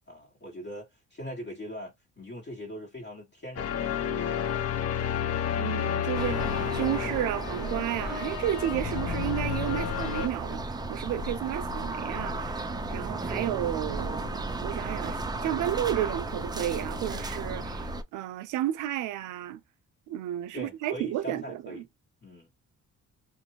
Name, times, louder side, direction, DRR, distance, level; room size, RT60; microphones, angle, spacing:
voice 1, 0.1-5.0 20.5-21.8 22.2-22.5, equal, 35° left, 1.2 m, -42 dB
sound 1, 3.6-10.3, left 9 dB, 55° left, 0.5 m, -31 dB
voice 2, 5.6-19.6 20.1-21.8, right 12 dB, 80° right, 0.5 m, -32 dB
sound 2, 6.1-18.0, right 2 dB, 15° right, 0.4 m, -34 dB
2.5 x 2.0 x 2.9 m
cardioid pair, 90°, 30 cm